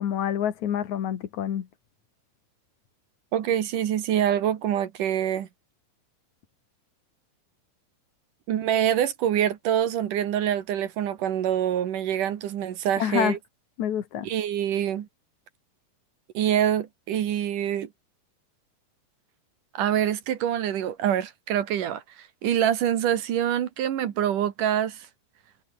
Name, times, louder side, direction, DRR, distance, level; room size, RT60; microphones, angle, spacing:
voice 1, 0.0-1.7 13.0-13.4 13.8-14.3, left 10 dB, 55° left, 2.9 m, -27 dB
voice 2, 3.3-5.5 8.5-13.4 14.2-15.1 16.3-17.9 19.7-25.1, right 10 dB, 65° right, 3.0 m, -25 dB
omnidirectional pair, 4.2 m